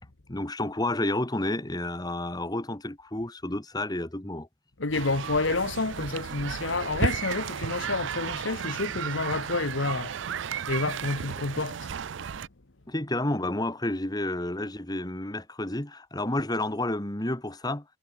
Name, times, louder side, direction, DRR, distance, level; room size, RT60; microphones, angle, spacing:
voice 1, 0.3-4.5 12.9-17.8, left 1 dB, 20° left, 1.7 m, -30 dB
voice 2, 4.8-10.2 10.7-11.9, left 3 dB, 70° left, 1.4 m, -29 dB
sound 1, 4.9-12.5, right 7 dB, 65° right, 0.5 m, -34 dB
head